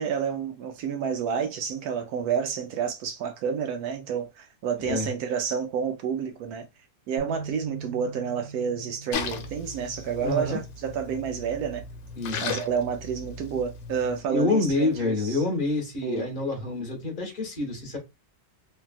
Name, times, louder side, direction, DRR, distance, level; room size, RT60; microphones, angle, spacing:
voice 1, 0.0-6.7 7.1-11.8 12.4-15.4 16.0-16.3, right 7 dB, 70° right, 0.9 m, -29 dB
voice 2, 4.8-5.1 10.2-10.6 12.2-12.6 14.3-18.0, left 3 dB, 35° left, 1.1 m, -27 dB
sound 1, 7.2-13.4, right 5 dB, 50° right, 1.1 m, -44 dB
Splash splatter, 9.1-14.2, left 6 dB, 85° left, 1.3 m, -37 dB
3.4 x 2.3 x 2.3 m
omnidirectional pair, 1.9 m